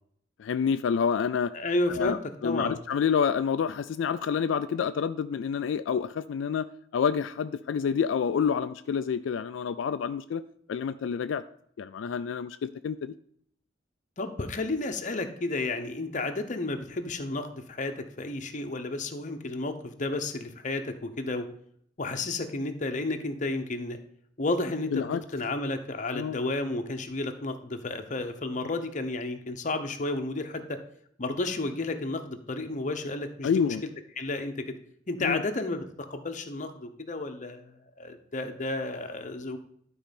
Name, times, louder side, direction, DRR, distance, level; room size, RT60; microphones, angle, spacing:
voice 1, 0.4-1.5 1.9-2.2 2.4-6.7 6.9-10.4 10.7-11.4 11.8-13.1 14.8-14.9 24.9-25.2 26.1-26.4 33.4-33.8 35.2-35.4, left 7 dB, 85° left, 11 dB, 0.3 m, -28 dB
voice 2, 1.5-2.2 2.4-2.8 14.2-21.5 22.0-24.0 24.4-25.0 25.3-30.8 31.2-33.8 34.2-34.6 35.1-35.8 36.1-39.6, left 2 dB, 40° left, 6 dB, 0.9 m, -32 dB
11.5 x 4.3 x 5.2 m, 0.66 s
head